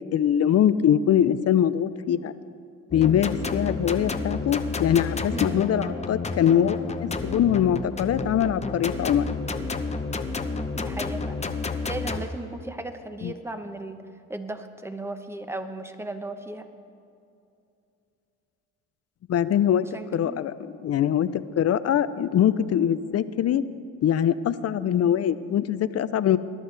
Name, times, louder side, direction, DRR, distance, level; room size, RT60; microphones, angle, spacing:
voice 1, 0.1-2.3 2.9-9.3 13.2-13.3 19.3-19.9 20.1-23.6 24.0-26.4, left 9 dB, 50° left, 14 dB, 0.6 m, -23 dB
sound 1, 2.9-12.3, left 3 dB, 20° left, 0.8 m, -31 dB
voice 2, 5.3-5.7 10.5-11.4 11.8-16.7 19.9-20.4, right 2 dB, 10° right, 8 dB, 1.0 m, -36 dB
21.0 x 11.0 x 3.4 m, 2.6 s
cardioid pair, 90°, 33 cm